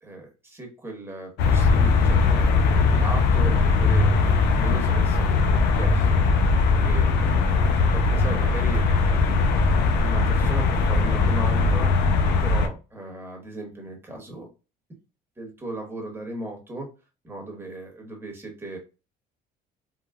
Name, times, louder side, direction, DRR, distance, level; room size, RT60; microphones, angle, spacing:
voice 1, 0.0-6.4 6.8-9.6 9.8-11.9 12.4-14.5 15.4-16.9 17.2-18.8, right 1 dB, 15° right, 1 dB, 1.2 m, -37 dB
sound 1, 1.4-12.7, left 4 dB, 80° left, 0.6 m, -20 dB
3.6 x 2.2 x 2.2 m, 0.31 s
cardioid pair, 110°, 17 cm